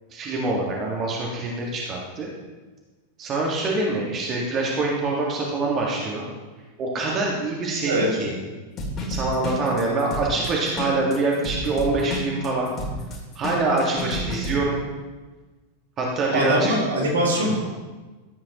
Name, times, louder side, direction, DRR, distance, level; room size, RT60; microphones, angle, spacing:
voice 1, 0.1-2.3 3.2-6.2 6.8-8.3 9.1-12.7 13.3-14.8 16.0-16.7 17.4-17.5, right 2 dB, 30° right, -3 dB, 1.7 m, -25 dB
sound 1, 8.8-14.5, left 1 dB, 30° left, 2.9 m, -30 dB
voice 2, 16.3-17.6, right 1 dB, 70° right, -4 dB, 3.2 m, -22 dB
14.0 x 8.6 x 3.0 m, 1.3 s
figure-of-eight pair, 90°, 0 cm